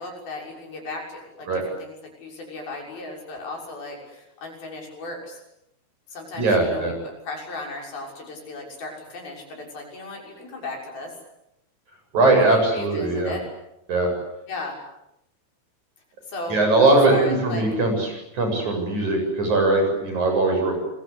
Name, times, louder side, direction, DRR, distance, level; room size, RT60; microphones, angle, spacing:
voice 1, 0.0-2.0 2.2-5.4 6.1-11.1 12.5-13.4 14.5-14.8 16.3-17.7, left 2 dB, 70° left, 0 dB, 8.3 m, -36 dB
voice 2, 6.4-6.9 12.1-13.3 13.9-14.1 16.5-20.8, right 2 dB, 50° right, 3 dB, 9.0 m, -20 dB
28.0 x 23.0 x 8.5 m, 0.83 s
omnidirectional pair, 4.4 m